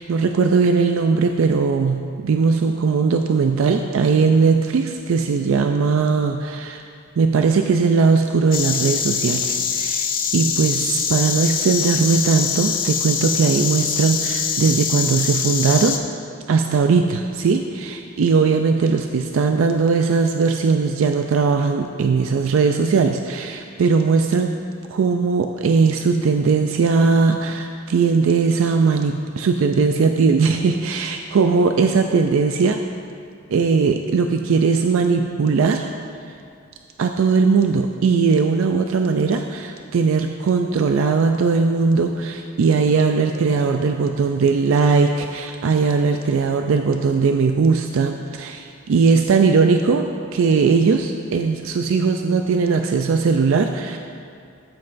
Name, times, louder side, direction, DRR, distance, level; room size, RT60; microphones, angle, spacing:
voice 1, 0.0-6.8 7.2-16.0 16.5-24.5 24.9-32.8 33.5-35.9 37.0-50.1 50.3-54.0, right 5 dB, 65° right, 5 dB, 0.4 m, -19 dB
Insect, 8.5-16.0, left 7 dB, 40° left, 0.6 m, -23 dB
13.0 x 7.6 x 2.6 m, 2.3 s
head